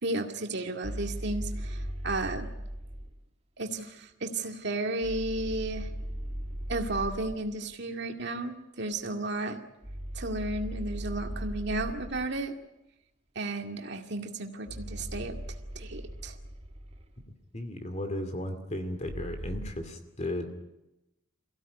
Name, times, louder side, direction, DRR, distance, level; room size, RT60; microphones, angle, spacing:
voice 1, 0.0-2.5 3.6-5.9 6.7-9.6 10.1-12.5 13.4-15.4 15.8-16.4, right 2 dB, 55° right, 4 dB, 2.2 m, -33 dB
sound 1, 0.8-3.2 5.0-7.5 9.8-12.4 14.7-17.3 19.1-19.7, equal, 30° right, 1.7 m, -38 dB
voice 2, 17.5-20.5, left 1 dB, 35° left, 7 dB, 2.4 m, -35 dB
23.0 x 16.5 x 9.9 m, 0.94 s
head